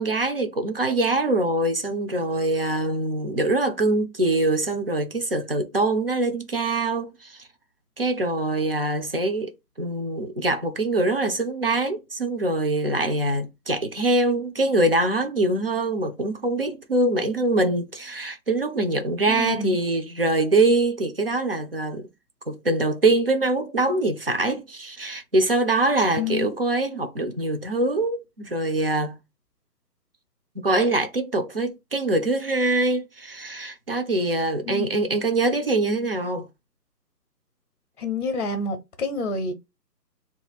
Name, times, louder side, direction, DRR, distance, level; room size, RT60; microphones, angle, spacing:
voice 1, 0.0-7.4 8.0-9.5 9.8-22.1 22.5-29.2 30.6-36.5, right 2 dB, 40° right, 0.4 m, -24 dB
voice 2, 19.3-19.8 26.2-26.6 34.6-34.9 38.0-39.5, left 3 dB, 45° left, 0.7 m, -28 dB
3.0 x 2.4 x 4.0 m
hypercardioid pair, 160°, 50 cm